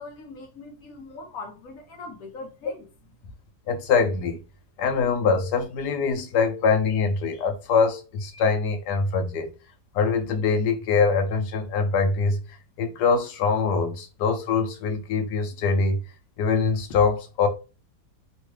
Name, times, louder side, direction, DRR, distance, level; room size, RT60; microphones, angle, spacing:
voice 1, 0.0-2.9 3.2-3.3, left 3 dB, 65° left, 1.1 m, -41 dB
voice 2, 3.7-4.4 4.8-9.5 9.9-16.0 16.4-17.5, left 5 dB, 85° left, 1.3 m, -23 dB
3.4 x 2.2 x 3.1 m
omnidirectional pair, 1.7 m